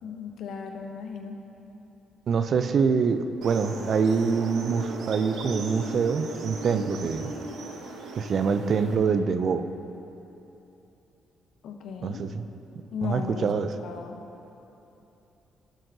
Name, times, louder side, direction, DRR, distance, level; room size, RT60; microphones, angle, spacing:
voice 1, 0.0-1.4 11.6-12.2 12.9-13.5 13.8-14.2, left 6 dB, 75° left, 4 dB, 0.7 m, -36 dB
voice 2, 2.3-7.3 8.2-9.6 12.0-12.5 13.0-13.7, right 5 dB, 55° right, 10 dB, 0.4 m, -25 dB
sound 1, 3.4-9.0, right 3 dB, 80° right, 0.9 m, -37 dB
12.0 x 7.7 x 2.7 m, 3.0 s
cardioid pair, 90°, 0 cm